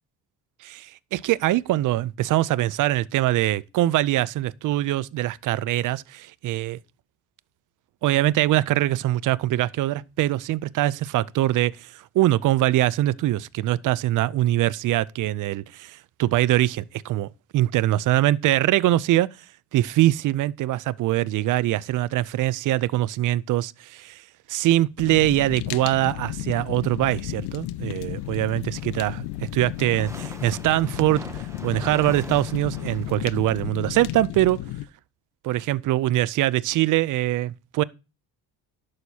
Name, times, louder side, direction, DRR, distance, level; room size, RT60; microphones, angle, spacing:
voice 1, 0.7-6.8 8.0-19.3 19.7-34.6 35.4-37.8, right 15 dB, 55° right, 0.5 m, -23 dB
Fire, 25.0-34.8, left 16 dB, 80° left, 0.5 m, -33 dB
sound 1, 28.5-33.6, right 2 dB, 10° right, 0.7 m, -43 dB
11.0 x 6.4 x 2.8 m
cardioid pair, 120°, 39 cm